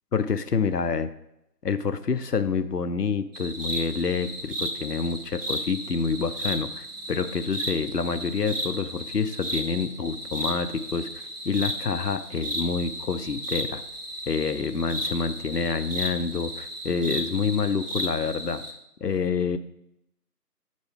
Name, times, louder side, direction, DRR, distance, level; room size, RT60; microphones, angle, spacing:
voice 1, 0.1-1.1 1.6-11.1 11.4-13.8 14.3-18.6 19.0-19.6, left 5 dB, 70° left, 11 dB, 0.6 m, -27 dB
sound 1, 3.3-18.7, equal, 65° right, 1.3 m, -34 dB
7.7 x 5.2 x 3.4 m, 0.82 s
figure-of-eight pair, 175°, 50 cm